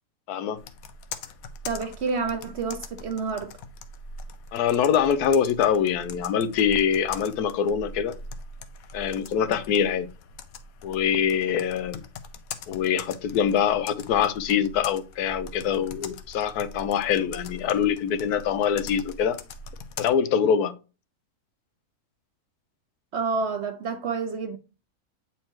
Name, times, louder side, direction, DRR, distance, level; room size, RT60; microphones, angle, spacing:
voice 1, 0.3-0.6 4.5-8.2 8.9-10.1 10.8-12.0 12.7-19.4 20.0-20.7, left 8 dB, 90° left, 1.2 m, -24 dB
Computer keyboard, 0.6-20.1, left 3 dB, 75° left, 1.1 m, -42 dB
voice 2, 1.6-3.5 23.1-24.6, right 4 dB, 55° right, 0.8 m, -29 dB
8.4 x 4.4 x 3.1 m
omnidirectional pair, 1.6 m